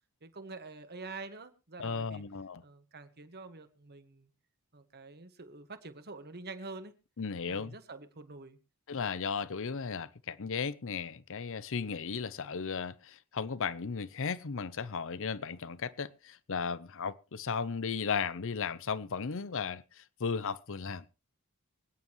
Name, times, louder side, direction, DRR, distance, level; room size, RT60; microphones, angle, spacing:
voice 1, 0.2-2.2 2.6-4.3 4.7-6.9 7.4-8.6, right 3 dB, 45° right, 1.6 m, -46 dB
voice 2, 1.8-2.6 7.2-7.7 8.9-21.1, left 5 dB, 60° left, 0.7 m, -35 dB
25.0 x 9.5 x 3.1 m
head